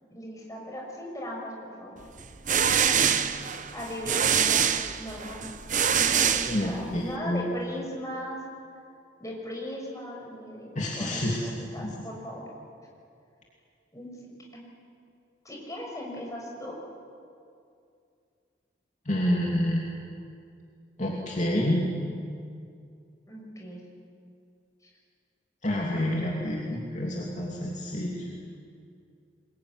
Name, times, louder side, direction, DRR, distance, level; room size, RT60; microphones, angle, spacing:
voice 1, 0.1-2.0 2.5-3.4 3.7-4.7 5.0-5.5 5.9-8.4 9.2-12.4 13.9-14.7 15.4-16.8 23.3-23.8, left 1 dB, 20° left, -2 dB, 6.2 m, -38 dB
sound 1, 2.2-7.1, right 8 dB, 45° right, 1.0 m, -25 dB
voice 2, 6.4-7.4 10.7-11.4 11.8-11.9 19.0-19.9 21.0-21.9 25.6-28.4, left 1 dB, 40° left, -2 dB, 2.9 m, -28 dB
24.0 x 22.0 x 9.9 m, 2.4 s
head